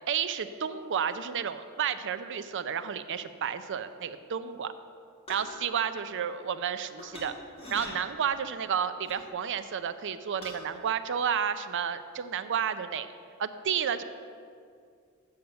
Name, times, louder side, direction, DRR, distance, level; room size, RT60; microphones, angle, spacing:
voice 1, 0.1-4.7 5.3-7.3 7.7-13.1 13.4-14.0, right 8 dB, 60° right, 12 dB, 0.5 m, -31 dB
sound 1, 5.3-5.6 7.0-7.3 7.6-7.9 9.0-9.2 10.4-10.6, left 1 dB, 25° left, 2.1 m, -42 dB
7.8 x 6.8 x 6.8 m, 2.3 s
head